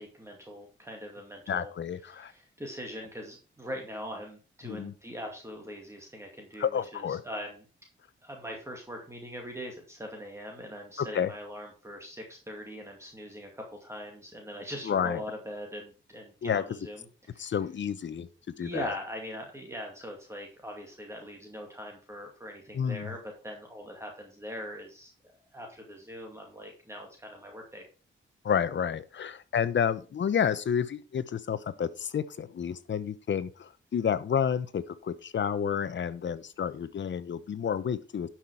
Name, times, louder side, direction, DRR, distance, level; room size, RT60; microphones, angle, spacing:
voice 1, 0.0-1.7 2.0-7.6 8.2-17.5 18.6-25.1 25.5-27.8, equal, 15° right, 1 dB, 2.3 m, -41 dB
voice 2, 1.5-2.3 4.6-4.9 6.6-7.2 11.0-11.3 14.8-15.2 16.4-16.6 17.4-18.3 18.6-18.9 22.7-23.1 28.4-38.3, left 7 dB, 60° left, 14 dB, 0.9 m, -30 dB
11.5 x 5.9 x 4.8 m, 0.36 s
wide cardioid pair, 115°, 21 cm